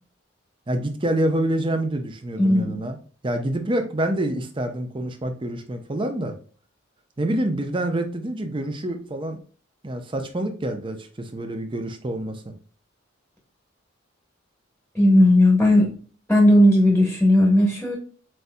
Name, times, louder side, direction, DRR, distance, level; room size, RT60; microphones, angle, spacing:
voice 1, 0.7-3.0 3.2-6.3 7.2-9.4 9.8-12.5, right 1 dB, 25° right, 5 dB, 0.6 m, -27 dB
voice 2, 2.4-2.7 14.9-15.9 16.3-18.0, left 1 dB, 5° left, -1 dB, 1.1 m, -16 dB
7.6 x 2.7 x 2.2 m, 0.40 s
head